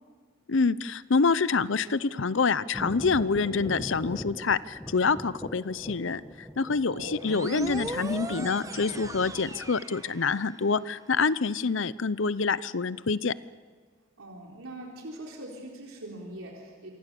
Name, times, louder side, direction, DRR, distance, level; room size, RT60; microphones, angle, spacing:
voice 1, 0.5-6.2 6.6-13.3, left 4 dB, 70° left, 17 dB, 0.7 m, -26 dB
Thunder, 2.7-9.7, equal, 5° left, 1.4 m, -42 dB
voice 2, 6.8-7.4 14.2-16.9, right 1 dB, 85° right, -1 dB, 4.1 m, -42 dB
sound 1, 7.2-10.7, right 2 dB, 15° right, 1.1 m, -38 dB
28.0 x 24.0 x 7.0 m, 1.5 s
head